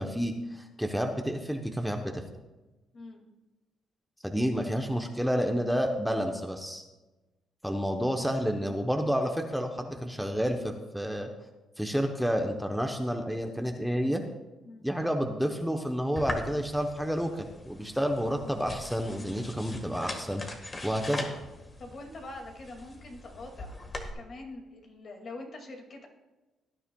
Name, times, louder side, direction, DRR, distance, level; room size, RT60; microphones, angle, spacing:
voice 1, 0.0-2.2 4.2-6.8 7.6-11.3 11.8-14.2 14.8-20.5 20.8-21.3, equal, ahead, 4 dB, 0.9 m, -30 dB
sound 1, 16.2-24.1, left 2 dB, 30° left, 1.5 m, -41 dB
voice 2, 21.8-23.8 24.1-26.1, left 2 dB, 50° left, 2 dB, 2.2 m, -44 dB
17.5 x 10.0 x 2.3 m, 1.1 s
cardioid pair, 90°, 0 cm